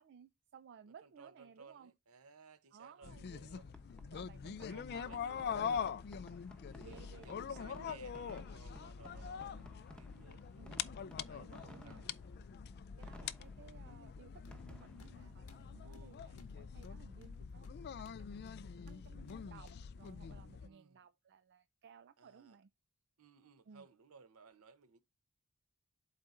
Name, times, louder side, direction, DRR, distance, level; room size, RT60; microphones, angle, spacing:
voice 1, 0.0-1.9 2.7-3.6 4.0-5.7 6.8-7.9 9.0-9.8 10.5-10.8 11.3-12.0 13.0-18.3 18.9-22.7 23.7-23.9, right 7 dB, 50° right, 0.4 m, -59 dB
voice 2, 1.0-3.7 4.4-5.9 6.7-10.5 11.2-12.2 12.9-13.2 15.8-16.5 20.6-21.0 22.2-22.6 23.2-25.0, right 5 dB, 70° right, 0.8 m, -59 dB
sound 1, 3.0-20.7, left 7 dB, 45° left, 0.4 m, -44 dB
Fireworks, 3.7-17.2, equal, 5° left, 0.8 m, -59 dB
sound 2, 14.2-20.5, left 2 dB, 85° left, 1.3 m, -65 dB
11.0 x 4.2 x 2.5 m
head